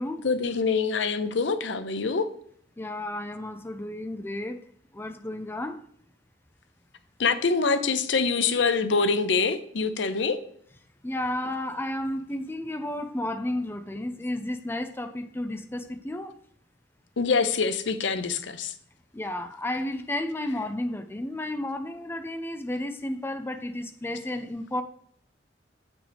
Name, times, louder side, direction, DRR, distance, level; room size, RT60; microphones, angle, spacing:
voice 1, 0.2-2.3 7.2-10.4 17.2-18.7 20.5-20.6, left 4 dB, 85° left, 0.6 m, -25 dB
voice 2, 2.8-4.7 4.9-5.8 11.0-16.4 19.1-24.8, left 1 dB, 15° left, 0.5 m, -32 dB
8.3 x 6.1 x 3.4 m
head